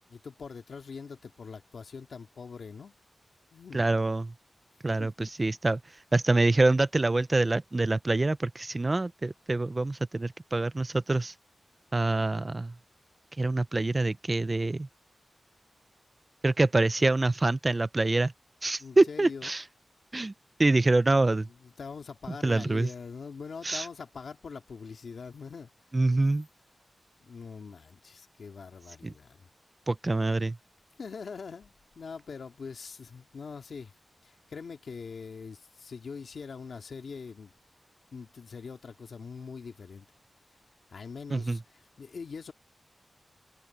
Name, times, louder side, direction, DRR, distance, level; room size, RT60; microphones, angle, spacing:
voice 1, 0.1-2.9 3.5-3.9 5.0-5.3 18.8-19.5 21.5-25.7 27.2-29.5 31.0-33.9 34.2-37.5 38.1-40.1 40.9-42.5, left 5 dB, 70° left, 2.0 m, -43 dB
voice 2, 3.7-4.3 4.8-11.3 11.9-12.7 13.4-14.9 16.4-18.3 18.6-19.6 20.1-20.3 20.6-21.5 22.4-22.9 23.6-23.9 25.9-26.5 29.0-29.1 29.9-30.6 41.3-41.6, right 2 dB, 25° right, 0.4 m, -26 dB
wide cardioid pair, 140°, 0 cm